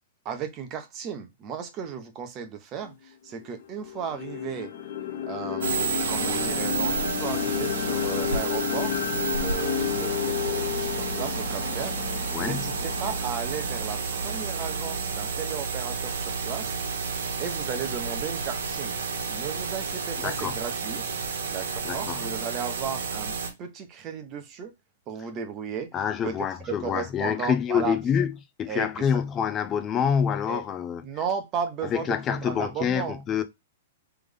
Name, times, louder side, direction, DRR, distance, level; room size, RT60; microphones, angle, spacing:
voice 1, 0.2-4.7 5.3-9.0 9.3-19.0 19.3-21.0 21.5-24.7 25.1-26.0 26.2-28.0 28.7-29.2 30.5-30.6 31.0-33.2, right 7 dB, 30° right, 0.9 m, -35 dB
sound 1, 2.8-2.9 3.4-15.4, left 10 dB, 65° left, 1.1 m, -32 dB
sound 2, 5.6-23.5, right 5 dB, 90° right, 1.3 m, -31 dB
voice 2, 12.3-12.6 20.2-20.5 21.8-22.2 25.9-28.3 28.6-31.0 31.9-33.4, left 8 dB, 20° left, 0.5 m, -26 dB
3.4 x 3.4 x 3.6 m
hypercardioid pair, 155°, 0 cm